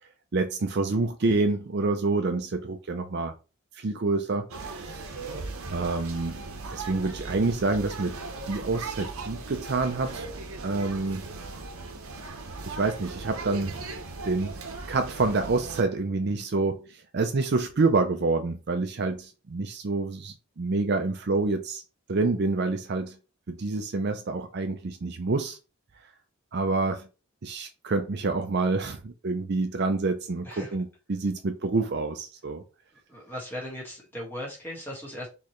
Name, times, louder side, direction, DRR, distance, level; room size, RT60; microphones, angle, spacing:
voice 1, 0.3-3.3 3.8-5.1 5.7-6.4 6.7-8.2 8.5-10.3 10.6-11.3 12.7-13.8 14.2-14.6 14.9-21.8 22.1-23.2 23.5-25.6 26.5-27.1 27.4-32.6, right 3 dB, 50° right, 0.5 m, -27 dB
sound 1, 4.5-15.8, right 3 dB, 75° right, 0.8 m, -38 dB
voice 2, 30.4-30.8 33.1-35.3, left 1 dB, 10° left, 1.5 m, -38 dB
4.3 x 3.2 x 3.1 m
head